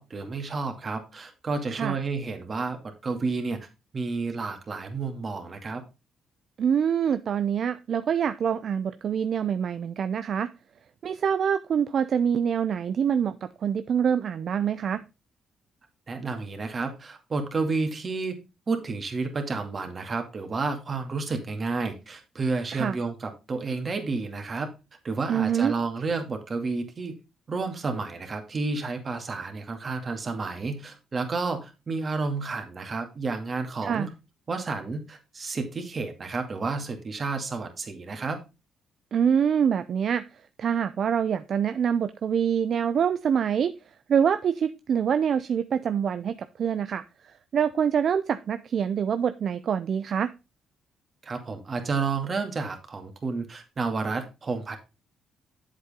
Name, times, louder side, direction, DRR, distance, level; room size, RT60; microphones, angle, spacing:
voice 1, 0.0-3.6 3.9-5.8 16.1-18.3 18.7-24.7 25.0-27.1 27.5-34.1 34.5-38.4 51.2-54.8, right 4 dB, 35° right, 5 dB, 2.3 m, -31 dB
voice 2, 6.6-10.5 11.0-15.0 22.7-23.0 25.3-25.7 33.8-34.1 39.1-40.2 40.6-43.7 44.1-47.0 47.5-50.3, right 8 dB, 55° right, 12 dB, 0.5 m, -25 dB
8.2 x 7.5 x 3.6 m, 0.27 s
cardioid pair, 90°, 0 cm